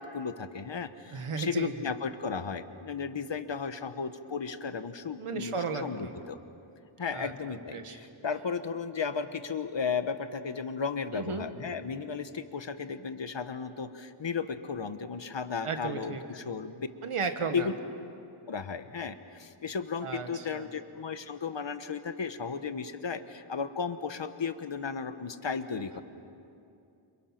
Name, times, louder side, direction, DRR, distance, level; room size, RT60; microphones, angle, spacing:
voice 1, 0.0-6.4 7.0-16.9 17.5-17.7 18.5-26.0, left 5 dB, 60° left, 10 dB, 1.4 m, -35 dB
voice 2, 1.1-1.9 5.2-6.1 7.1-8.0 11.1-11.5 15.6-16.2 17.0-17.7 20.0-20.7 25.7-26.0, right 5 dB, 85° right, 6 dB, 1.9 m, -35 dB
29.5 x 27.5 x 6.0 m, 2.6 s
wide cardioid pair, 60°, 50 cm